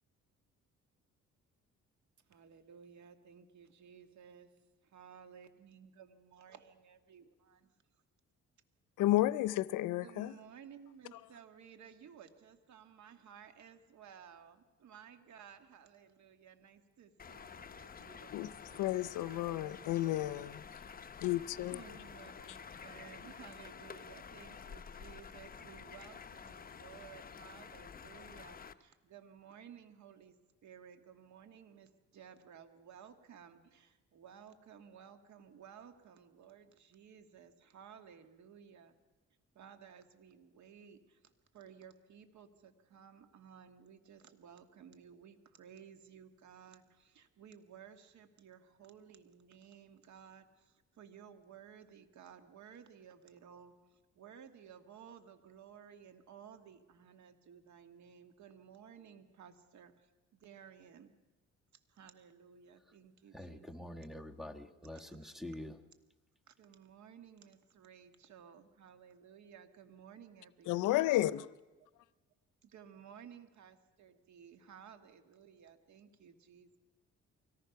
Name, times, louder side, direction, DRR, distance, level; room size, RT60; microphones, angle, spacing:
voice 1, 2.3-4.5 4.8-7.7 10.0-20.1 21.7-30.4 30.6-38.9 39.6-41.2 41.5-61.1 61.9-63.7 65.1-65.2 66.5-71.0 72.6-76.8, right 8 dB, 70° right, 1.7 m, -56 dB
voice 2, 9.0-10.3 18.3-18.5 18.8-20.6 21.2-21.8 70.7-71.5, left 15 dB, 90° left, 0.6 m, -32 dB
sound 1, 17.2-28.7, left 6 dB, 30° left, 0.7 m, -50 dB
voice 3, 63.3-65.8, left 1 dB, ahead, 1.3 m, -46 dB
24.0 x 18.5 x 5.8 m
cardioid pair, 90°, 30 cm